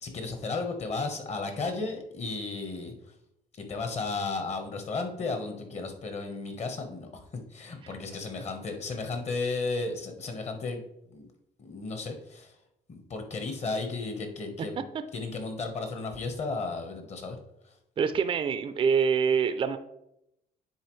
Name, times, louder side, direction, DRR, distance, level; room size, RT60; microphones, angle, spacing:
voice 1, 0.0-2.9 3.6-7.1 7.5-11.3 11.6-12.5 12.9-14.8 15.1-17.4, left 3 dB, 40° left, 5 dB, 1.2 m, -34 dB
voice 2, 18.0-19.8, right 6 dB, 30° right, 10 dB, 0.4 m, -25 dB
9.7 x 3.8 x 3.2 m, 0.81 s
cardioid pair, 110°, 17 cm